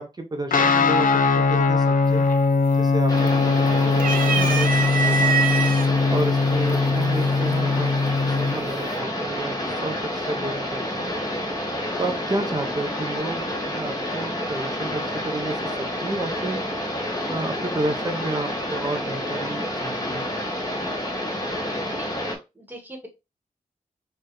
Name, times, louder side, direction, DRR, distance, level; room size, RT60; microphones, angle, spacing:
voice 1, 0.0-2.3 2.8-5.5 6.1-7.9 8.3-11.1 12.0-16.6 17.3-20.3, right 2 dB, 30° right, 5 dB, 0.6 m, -31 dB
Guitar, 0.5-8.6, left 4 dB, 75° left, 0.5 m, -20 dB
sound 1, 2.1-2.5 2.8-3.5 3.9-5.9 6.7-6.8 8.1-8.5, right 5 dB, 80° right, 0.6 m, -24 dB
sound 2, 3.1-22.4, left 1 dB, 25° left, 1.2 m, -29 dB
voice 2, 22.0-23.1, right 1 dB, 15° right, 2 dB, 1.2 m, -42 dB
4.6 x 2.3 x 3.1 m, 0.25 s
wide cardioid pair, 110°, 14 cm